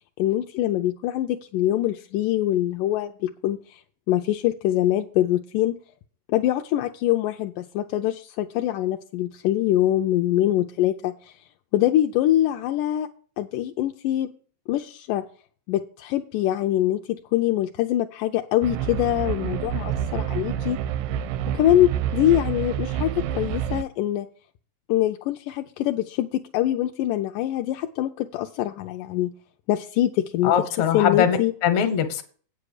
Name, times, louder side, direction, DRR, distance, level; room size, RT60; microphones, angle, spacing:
voice 1, 0.2-3.8 4.1-5.8 6.3-11.4 11.7-13.1 13.4-14.3 14.7-15.3 15.7-20.8 21.5-24.3 24.9-29.3 29.7-30.5 30.9-31.5, left 13 dB, 80° left, 5 dB, 2.1 m, -24 dB
sound 1, 18.6-23.8, right 10 dB, 85° right, 2.3 m, -28 dB
voice 2, 30.4-32.2, left 8 dB, 65° left, 9 dB, 2.3 m, -22 dB
8.8 x 7.8 x 4.8 m, 0.43 s
omnidirectional pair, 3.8 m